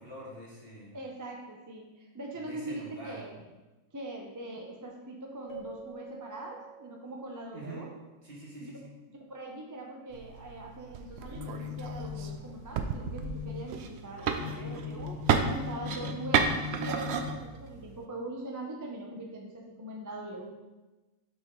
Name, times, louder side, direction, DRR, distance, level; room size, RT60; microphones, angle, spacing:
voice 1, 0.0-1.0 2.3-3.4 7.5-7.9 8.2-8.9 14.3-15.2, right 1 dB, 45° right, -5 dB, 1.8 m, -45 dB
voice 2, 0.9-3.3 3.9-7.9 8.6-8.7 9.1-15.1 15.5-16.5 16.8-20.6, right 1 dB, 20° right, -1 dB, 0.5 m, -41 dB
Keyboard (musical), 5.5-7.9, right 3 dB, 60° left, 1.5 m, -47 dB
sound 1, 10.1-18.1, right 6 dB, 65° right, 0.7 m, -33 dB
sound 2, 11.1-18.0, left 9 dB, 90° left, 1.1 m, -41 dB
6.4 x 5.1 x 3.8 m, 1.1 s
omnidirectional pair, 1.4 m